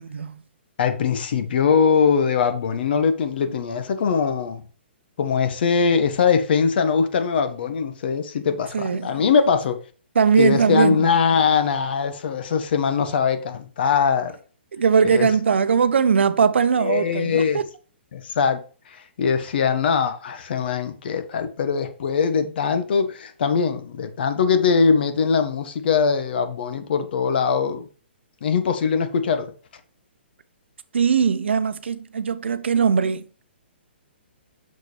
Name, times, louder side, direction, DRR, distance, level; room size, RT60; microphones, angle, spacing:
voice 1, 0.8-4.6 5.2-9.8 10.4-14.4 15.0-15.3 16.8-17.6 18.1-18.6 18.9-27.8 28.4-29.5, left 6 dB, 60° left, 1.3 m, -21 dB
voice 2, 8.7-9.1 10.1-11.0 14.7-17.7 30.9-33.2, right 6 dB, 75° right, 0.8 m, -20 dB
6.6 x 6.3 x 3.3 m
hypercardioid pair, 140°, 6 cm